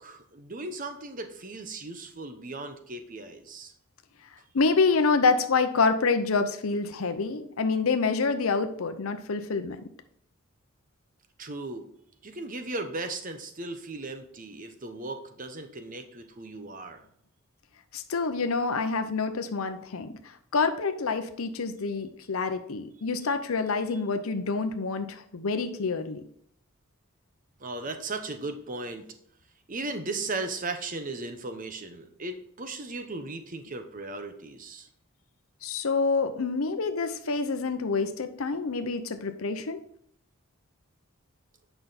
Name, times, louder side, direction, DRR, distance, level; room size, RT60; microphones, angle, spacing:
voice 1, 0.0-3.7 11.4-11.9 12.2-17.0 27.6-29.1 29.7-34.9, right 2 dB, 40° right, 7 dB, 0.9 m, -37 dB
voice 2, 4.5-9.8 17.9-26.2 35.6-39.8, left 4 dB, 80° left, 8 dB, 0.7 m, -27 dB
9.0 x 5.6 x 4.1 m, 0.67 s
head